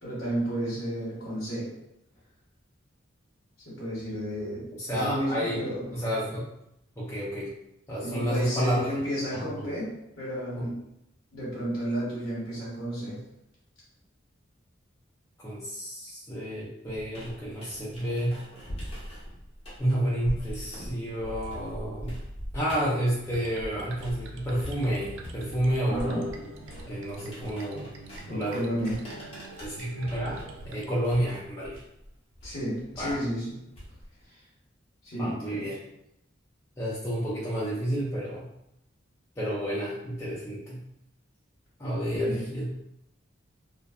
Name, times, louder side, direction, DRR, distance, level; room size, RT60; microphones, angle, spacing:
voice 1, 0.0-1.7 3.7-5.9 8.0-9.9 10.2-10.7 11.3-13.2 25.8-26.2 28.3-29.0 32.4-33.5 34.3-34.4 35.0-35.7 42.2-42.5, equal, 60° left, -8 dB, 0.9 m, -32 dB
voice 2, 4.7-6.5 7.0-7.5 7.9-8.9 9.3-9.7 10.5-10.6 15.4-18.4 19.8-22.2 22.5-26.4 26.9-27.9 28.3-28.6 29.6-31.8 33.0-33.2 35.2-35.8 36.8-38.5 39.4-40.8 41.8-42.7, equal, 15° left, -8 dB, 0.4 m, -30 dB
sound 1, 16.9-24.3 24.6-34.2, equal, 30° left, 0.8 m, -42 dB
sound 2, 23.2-30.9, right 2 dB, 70° right, 0.3 m, -45 dB
2.6 x 2.2 x 2.3 m, 0.83 s
head